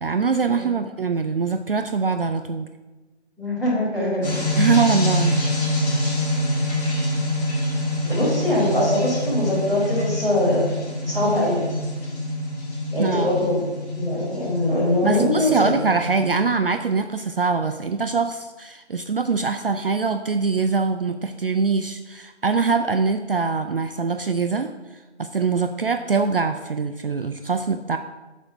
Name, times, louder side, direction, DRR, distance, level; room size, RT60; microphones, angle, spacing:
voice 1, 0.0-2.7 4.6-5.4 13.0-13.4 15.0-28.0, right 4 dB, 55° right, 8 dB, 0.4 m, -23 dB
voice 2, 3.4-4.3 8.0-10.6 11.0-11.7 12.9-13.7 13.9-15.7, left 1 dB, ahead, -17 dB, 1.3 m, -22 dB
sound 1, 4.2-16.3, left 1 dB, 15° left, 2.4 m, -26 dB
6.6 x 6.4 x 5.8 m, 1.2 s
figure-of-eight pair, 170°, 34 cm